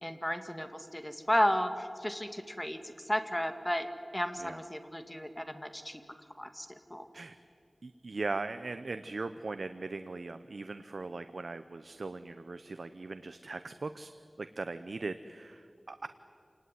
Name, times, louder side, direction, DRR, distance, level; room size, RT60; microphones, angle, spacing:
voice 1, 0.0-3.9 4.1-6.0 6.4-7.1, equal, 15° left, 7 dB, 2.2 m, -33 dB
voice 2, 7.8-14.1 14.4-16.1, right 3 dB, 85° right, 10 dB, 0.8 m, -39 dB
28.0 x 19.5 x 9.5 m, 2.5 s
wide cardioid pair, 55°, 0 cm